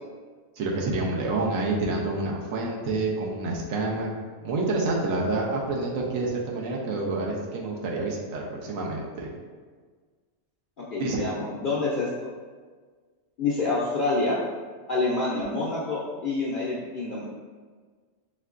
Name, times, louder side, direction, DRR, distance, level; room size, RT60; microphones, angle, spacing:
voice 1, 0.6-4.1 4.4-9.3 11.0-11.3, right 2 dB, 70° right, -2 dB, 1.0 m, -28 dB
voice 2, 10.9-12.3 13.4-14.4 14.9-17.3, left 3 dB, 60° left, -6 dB, 0.5 m, -27 dB
4.4 x 3.6 x 2.4 m, 1.5 s
omnidirectional pair, 1.5 m